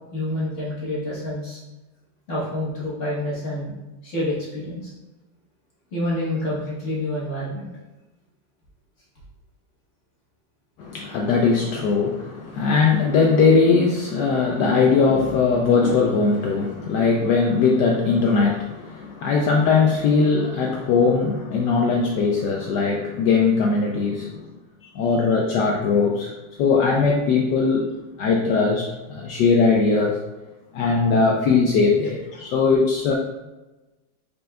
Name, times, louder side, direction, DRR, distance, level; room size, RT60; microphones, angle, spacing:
voice 1, 0.1-1.6 2.3-3.7 4.0-4.9 5.9-7.7 24.8-24.9, left 1 dB, 40° left, -7 dB, 1.4 m, -28 dB
voice 2, 10.8-24.5 24.9-26.3 26.6-27.9 28.2-30.2 30.7-33.1, left 4 dB, 85° left, 0 dB, 0.9 m, -20 dB
5.0 x 4.4 x 2.4 m, 1.1 s
omnidirectional pair, 2.4 m